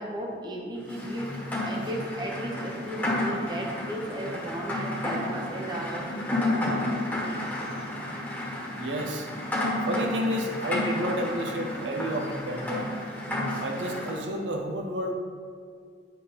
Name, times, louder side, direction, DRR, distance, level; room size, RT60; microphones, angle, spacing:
voice 1, 0.0-1.4 1.6-6.4, right 1 dB, 25° right, 0 dB, 0.9 m, -35 dB
Rain, 0.9-14.2, left 1 dB, 10° left, 1.4 m, -31 dB
voice 2, 8.8-9.3 9.8-13.2 13.6-15.1, equal, 85° right, 3 dB, 0.7 m, -31 dB
9.2 x 3.5 x 5.5 m, 2.1 s
head